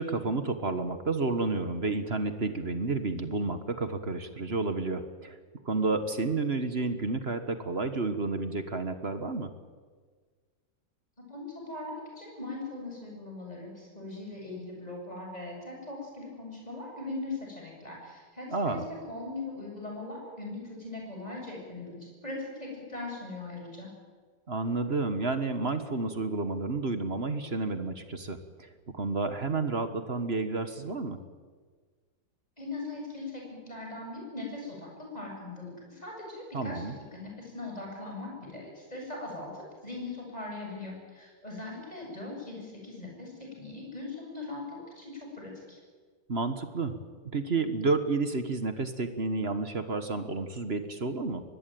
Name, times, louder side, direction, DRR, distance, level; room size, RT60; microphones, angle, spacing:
voice 1, 0.0-5.3 5.6-9.5 18.5-18.9 24.5-28.7 28.9-31.2 36.5-36.9 46.3-47.0 47.3-51.4, right 3 dB, 35° right, 9 dB, 1.5 m, -30 dB
voice 2, 11.2-18.8 19.1-23.9 32.6-36.8 37.1-43.3 43.6-45.8, left 2 dB, 20° left, -1 dB, 7.6 m, -40 dB
23.5 x 19.5 x 9.3 m, 1.5 s
omnidirectional pair, 2.0 m